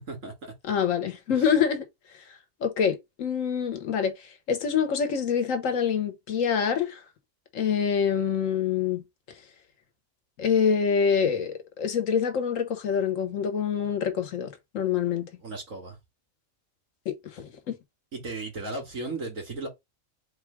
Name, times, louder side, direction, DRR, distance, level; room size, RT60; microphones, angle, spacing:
voice 1, 0.6-1.8 2.6-4.1 4.5-7.0 7.5-9.0 10.4-14.5 14.7-15.3 17.1-17.7, left 7 dB, 85° left, 1.3 m, -26 dB
voice 2, 15.4-16.0 18.1-19.7, right 3 dB, 80° right, 2.4 m, -35 dB
4.2 x 2.3 x 4.5 m
omnidirectional pair, 1.3 m